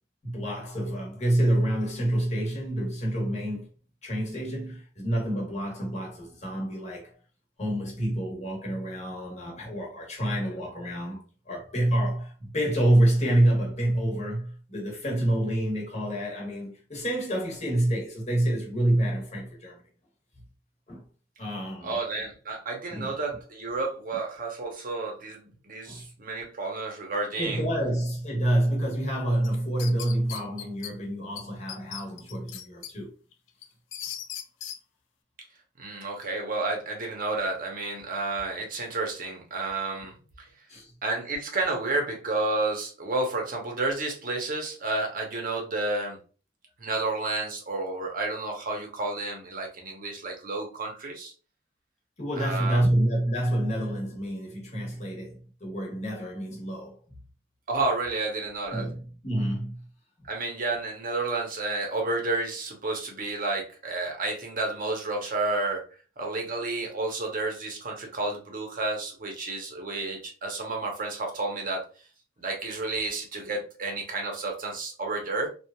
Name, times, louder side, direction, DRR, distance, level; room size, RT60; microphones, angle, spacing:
voice 1, 0.2-3.7 4.0-7.1 7.6-19.8 20.9-21.0 21.4-22.0 22.9-23.1 25.9-26.0 27.4-33.1 40.7-40.9 52.2-57.0 58.7-59.8, right 1 dB, 40° left, 1.0 m, -27 dB
voice 2, 21.8-27.6 35.8-40.1 41.0-46.2 46.8-51.3 52.4-52.8 57.7-58.9 60.3-65.8 66.2-71.8 72.4-75.5, right 3 dB, 50° right, 0.8 m, -31 dB
sound 1, 29.4-30.9 31.4-31.5 31.7-32.9 33.3-34.8, left 9 dB, 85° left, 0.4 m, -38 dB
2.9 x 2.4 x 2.2 m
head